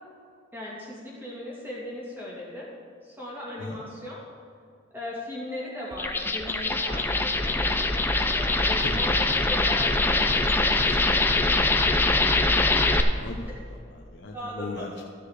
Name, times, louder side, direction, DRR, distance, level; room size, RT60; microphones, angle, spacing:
voice 1, 0.5-2.7 3.0-4.2 4.9-7.9 8.2-11.9 14.3-15.0, left 1 dB, 10° right, -5 dB, 2.5 m, -38 dB
sound 1, 5.9-13.0, left 2 dB, 10° left, 0.5 m, -23 dB
voice 2, 8.8-9.3 12.6-15.0, left 2 dB, 65° left, -1 dB, 0.9 m, -39 dB
13.5 x 6.9 x 4.9 m, 2.3 s
head